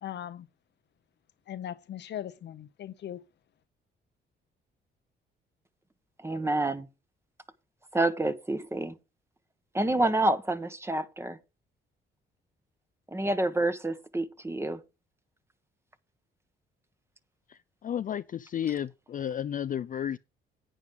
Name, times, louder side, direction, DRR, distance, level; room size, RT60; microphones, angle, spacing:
voice 1, 0.0-0.5 1.5-3.2, left 10 dB, 60° left, 0.8 m, -39 dB
voice 2, 6.2-6.9 7.9-8.9 9.7-11.4 13.1-14.8, right 2 dB, 15° right, 1.1 m, -28 dB
voice 3, 17.5-20.2, left 9 dB, 45° left, 0.4 m, -33 dB
11.0 x 9.2 x 3.7 m
cardioid pair, 90°, 20 cm